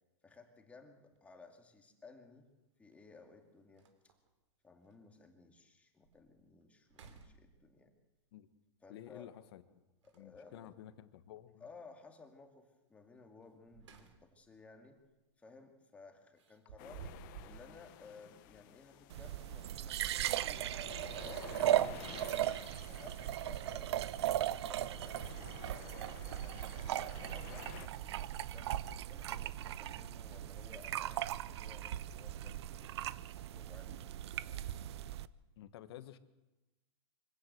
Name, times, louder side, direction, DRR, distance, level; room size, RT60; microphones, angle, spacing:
voice 1, 0.2-2.5 2.8-4.1 4.6-7.9 8.8-9.4 10.0-10.8 11.6-15.0 15.4-22.4 22.8-25.3 25.7-28.8 29.1-33.2 33.5-34.6, left 4 dB, 10° left, 4 dB, 2.3 m, -58 dB
sound 1, 1.0-1.2 2.9-3.0 3.4-3.5 3.8-4.3 4.9-5.0 5.5-5.6 6.0-6.4 6.8-7.9 10.0-10.7 13.4-14.5 14.9-15.1 16.4-17.7, right 7 dB, 80° right, 3.1 m, -54 dB
voice 2, 8.9-9.6 10.1-11.7 35.6-36.2, left 12 dB, 55° left, 12 dB, 1.5 m, -52 dB
sound 2, 16.8-27.9, left 15 dB, 40° left, 1.1 m, -53 dB
sound 3, 19.1-35.3, right 12 dB, 65° right, 0.7 m, -38 dB
24.5 x 16.5 x 7.9 m, 1.0 s
supercardioid pair, 155°, 15 cm